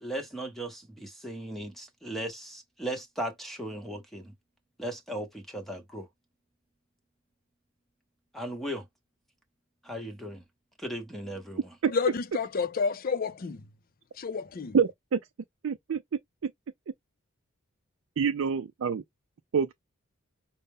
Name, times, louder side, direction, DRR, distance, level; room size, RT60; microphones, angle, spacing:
voice 1, 0.0-4.3 4.8-6.1 8.3-8.9 9.8-10.4 10.8-11.7, right 1 dB, ahead, 0.8 m, -37 dB
voice 2, 11.9-13.6 14.2-14.7, left 5 dB, 40° left, 0.4 m, -30 dB
voice 3, 14.7-15.2 15.6-16.0 16.4-16.5 18.2-19.0 19.5-19.7, right 6 dB, 65° right, 0.4 m, -26 dB
5.3 x 2.0 x 3.5 m
head